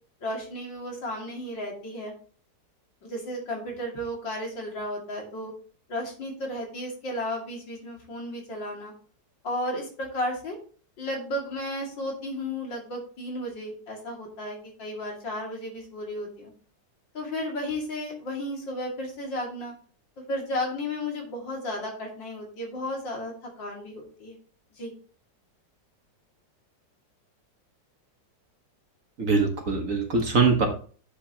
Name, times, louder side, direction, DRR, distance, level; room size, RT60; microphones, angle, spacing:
voice 1, 0.2-2.1 3.0-5.5 5.9-8.9 9.4-10.6 11.0-16.5 17.1-19.7 20.2-24.4 24.8-24.9, left 1 dB, 80° left, 0 dB, 3.1 m, -33 dB
voice 2, 29.2-30.7, right 4 dB, 50° right, 3 dB, 1.6 m, -22 dB
10.5 x 6.9 x 2.9 m, 0.42 s
omnidirectional pair, 2.0 m